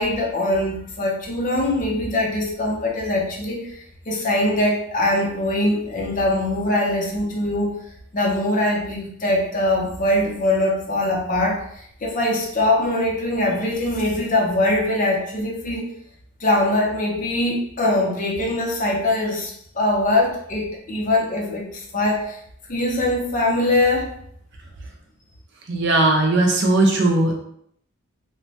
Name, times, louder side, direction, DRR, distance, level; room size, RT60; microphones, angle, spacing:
voice 1, 0.0-7.8 8.1-15.9 16.4-22.4 22.7-24.1, left 1 dB, 35° left, -1 dB, 0.5 m, -22 dB
voice 2, 25.7-27.3, right 2 dB, 55° right, 1 dB, 0.5 m, -18 dB
3.0 x 2.2 x 2.7 m, 0.68 s
head